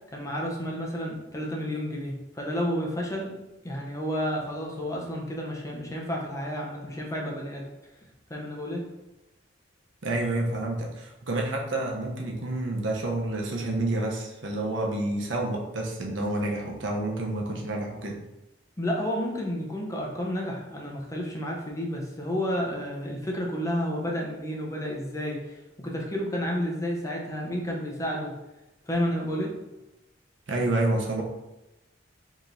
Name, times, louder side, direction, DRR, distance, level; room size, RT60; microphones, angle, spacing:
voice 1, 0.1-3.4 3.6-7.7 8.3-8.9 18.8-28.4 28.8-29.6, equal, 15° left, -2 dB, 0.7 m, -31 dB
voice 2, 10.0-18.2 30.5-31.2, right 2 dB, 80° right, 0 dB, 0.8 m, -29 dB
4.7 x 2.9 x 2.6 m, 0.98 s
head